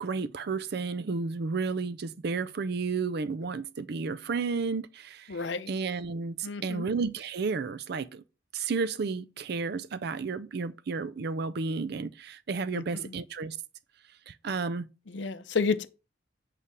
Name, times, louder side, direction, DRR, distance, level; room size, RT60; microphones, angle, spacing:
voice 1, 0.0-5.4 5.7-8.2 8.5-13.6 14.3-14.9, right 4 dB, 55° right, 0.5 m, -32 dB
voice 2, 5.3-5.7 6.4-6.9 12.7-13.1 15.1-15.9, left 4 dB, 65° left, 0.6 m, -31 dB
8.4 x 3.3 x 4.8 m
head